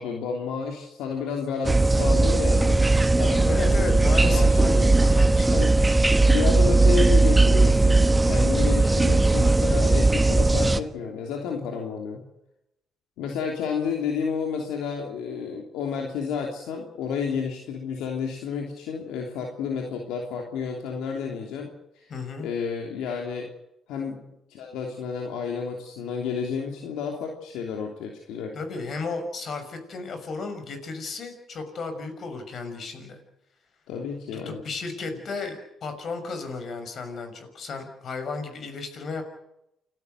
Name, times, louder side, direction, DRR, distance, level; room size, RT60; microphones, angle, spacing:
voice 1, 0.0-2.8 3.2-5.0 5.5-5.7 6.3-12.2 13.2-22.1 22.4-23.5 23.9-24.2 24.5-28.5 33.9-34.6, left 6 dB, 85° left, 1 dB, 3.1 m, -31 dB
sound 1, 1.6-10.8, right 2 dB, 20° right, 1.4 m, -18 dB
voice 2, 3.4-6.1 22.1-22.5 28.5-33.2 34.4-39.2, left 4 dB, 60° left, 7 dB, 6.3 m, -34 dB
29.0 x 13.0 x 8.1 m, 0.84 s
supercardioid pair, 65°, 0 cm